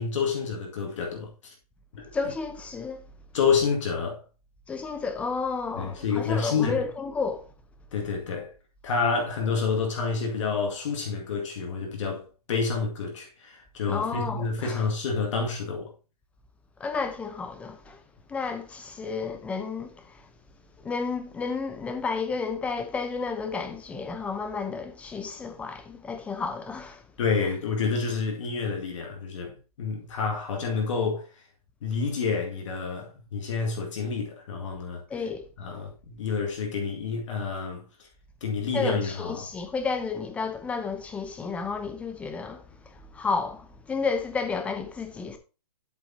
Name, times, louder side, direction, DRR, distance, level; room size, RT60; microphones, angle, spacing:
voice 1, 0.0-1.5 1.9-2.1 3.3-4.2 5.8-6.8 7.9-8.5 8.8-15.9 27.2-31.3 31.8-35.0 35.6-37.8 38.4-39.5, left 5 dB, 50° left, 2.0 m, -28 dB
voice 2, 2.1-3.0 4.7-7.5 13.9-14.8 16.8-18.0 18.3-20.3 20.8-27.0 35.1-35.5 38.7-45.4, left 4 dB, 5° left, 0.7 m, -32 dB
7.9 x 7.0 x 2.8 m
hypercardioid pair, 155°, 20 cm